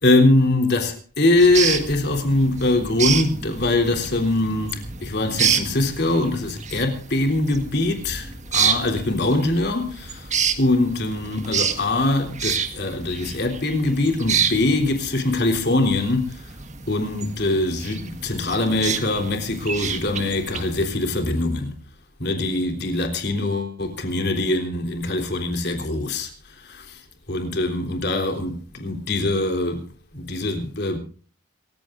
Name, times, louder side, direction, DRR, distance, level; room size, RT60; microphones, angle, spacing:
voice 1, 0.0-10.3 10.6-16.5 16.9-21.8 22.2-27.0 27.3-29.9 30.1-31.0, left 2 dB, 55° left, 3.5 m, -22 dB
sound 1, 1.4-20.8, right 7 dB, 35° right, 1.6 m, -29 dB
27.0 x 15.0 x 2.6 m
head